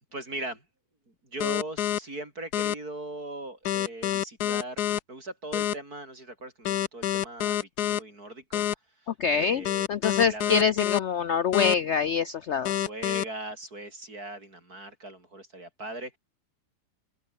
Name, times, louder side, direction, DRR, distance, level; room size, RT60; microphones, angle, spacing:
voice 1, 0.1-0.6 1.2-8.7 9.3-9.9 10.2-10.7 12.6-16.2, right 2 dB, 55° right, 7.0 m, -39 dB
sound 1, 1.4-2.0 2.5-2.7 3.6-5.0 5.5-5.7 6.6-8.0 8.5-8.7 9.6-11.0 11.5-11.7 12.6-13.2, left 12 dB, 65° left, 1.3 m, -27 dB
voice 2, 9.2-12.7, left 6 dB, 85° left, 0.6 m, -25 dB
open air
omnidirectional pair, 1.9 m